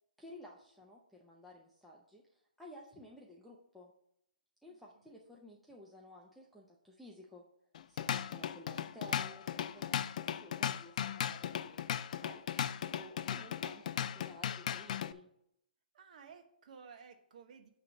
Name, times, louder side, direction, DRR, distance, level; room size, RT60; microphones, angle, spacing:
voice 1, 0.2-3.9 4.6-7.4 7.9-11.8 12.1-15.3, left 1 dB, ahead, -4 dB, 0.7 m, -54 dB
Drum kit / Drum, 7.7-15.1, left 9 dB, 50° left, 0.4 m, -37 dB
voice 2, 15.9-17.7, right 6 dB, 55° right, 6 dB, 1.1 m, -55 dB
8.9 x 3.3 x 6.1 m, 0.75 s
hypercardioid pair, 150°, 5 cm